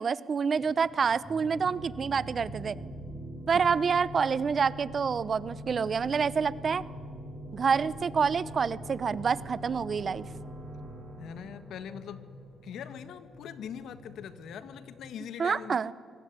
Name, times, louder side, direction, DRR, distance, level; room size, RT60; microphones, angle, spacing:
voice 1, 0.0-2.8 3.5-6.8 7.5-10.3 15.4-15.9, right 6 dB, 45° right, 19 dB, 0.8 m, -27 dB
sound 1, 0.6-15.1, left 2 dB, 10° left, 7.3 m, -51 dB
sound 2, 1.2-12.8, right 1 dB, 15° right, 5.2 m, -43 dB
voice 2, 11.2-12.2 12.6-15.8, left 8 dB, 75° left, 12 dB, 1.6 m, -42 dB
25.0 x 20.0 x 9.6 m, 2.1 s
cardioid pair, 90°, 0 cm